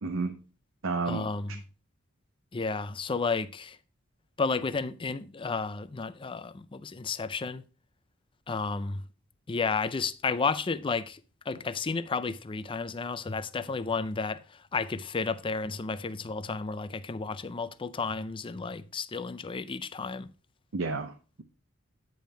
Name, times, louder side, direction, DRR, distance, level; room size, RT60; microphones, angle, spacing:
voice 1, 0.0-0.3 0.8-1.3 20.7-21.4, right 4 dB, 75° right, 0.8 m, -31 dB
voice 2, 1.1-1.6 2.5-3.8 4.4-7.6 8.5-9.0 9.5-11.2 11.5-20.3, left 4 dB, 25° left, 0.4 m, -32 dB
9.3 x 5.2 x 4.3 m
head